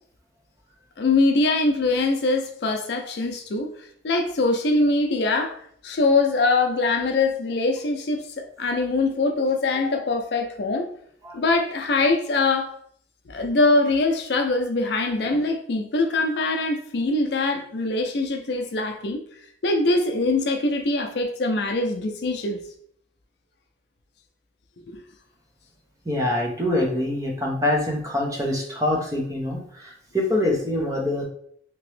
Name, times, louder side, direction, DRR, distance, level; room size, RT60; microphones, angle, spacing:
voice 1, 1.0-3.7 4.0-5.6 5.8-10.9 11.3-12.7 13.3-19.2 19.6-22.6 24.9-25.0, left 3 dB, 65° left, 4 dB, 0.5 m, -23 dB
voice 2, 26.1-31.2, left 1 dB, 20° right, -1 dB, 0.6 m, -25 dB
2.9 x 2.9 x 3.1 m, 0.64 s
head